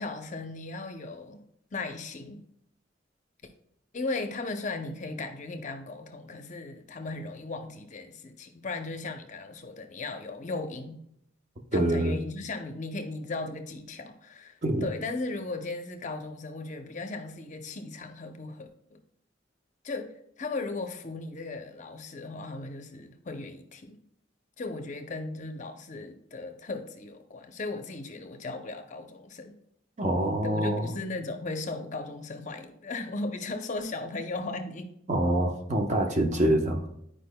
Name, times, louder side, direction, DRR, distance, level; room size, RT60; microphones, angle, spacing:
voice 1, 0.0-1.5 1.7-2.4 3.4-3.5 3.9-11.0 11.7-19.0 19.8-24.0 24.6-29.6 30.4-34.9, left 3 dB, 40° left, 7 dB, 0.6 m, -37 dB
voice 2, 11.7-12.2 14.6-14.8 30.0-30.9 35.1-37.0, right 1 dB, 40° right, 3 dB, 0.8 m, -25 dB
10.5 x 4.9 x 2.2 m, 0.73 s
head